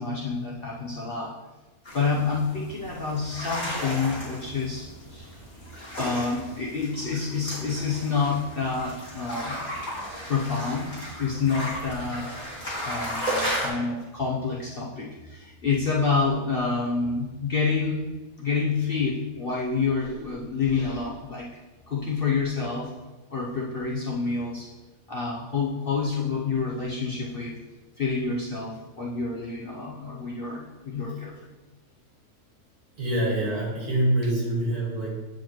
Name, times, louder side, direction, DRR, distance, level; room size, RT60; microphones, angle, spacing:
voice 1, 0.0-1.4 1.9-5.4 5.7-9.6 10.3-10.9 11.2-12.3 12.8-18.1 18.4-21.5 21.9-22.9 23.3-24.7 25.1-27.6 28.0-31.3, left 4 dB, 45° left, -4 dB, 0.8 m, -28 dB
sound 1, 1.9-13.7, equal, 30° left, 2.3 m, -35 dB
voice 2, 32.9-35.2, right 1 dB, 60° right, -3 dB, 2.2 m, -25 dB
8.8 x 4.8 x 3.0 m, 1.1 s
omnidirectional pair, 1.6 m